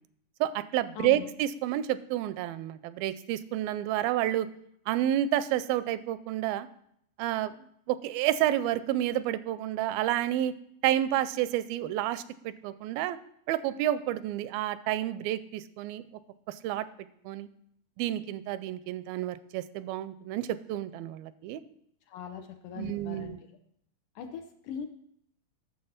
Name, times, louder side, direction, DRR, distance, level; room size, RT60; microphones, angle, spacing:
voice 1, 0.4-4.5 4.9-6.7 7.2-7.5 7.9-10.5 10.8-13.2 13.5-16.0 16.6-16.9 17.3-17.5 18.0-21.6 22.8-23.4, right 12 dB, 85° right, 15 dB, 2.3 m, -30 dB
voice 2, 22.1-23.4 24.2-24.9, left 8 dB, 75° left, 6 dB, 2.0 m, -40 dB
8.7 x 7.2 x 5.8 m, 0.71 s
omnidirectional pair, 4.2 m